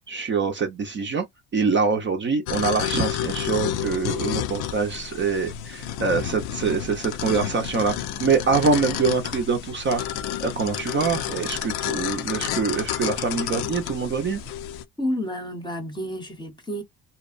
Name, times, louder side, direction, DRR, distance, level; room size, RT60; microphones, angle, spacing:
voice 1, 0.1-1.2 1.5-7.9 8.2-10.0 10.4-14.4, right 5 dB, 30° right, 0.6 m, -24 dB
sound 1, 2.5-14.8, left 11 dB, 80° left, 0.6 m, -30 dB
voice 2, 15.0-16.8, equal, 10° left, 0.8 m, -30 dB
2.8 x 2.0 x 2.4 m
cardioid pair, 110°, 37 cm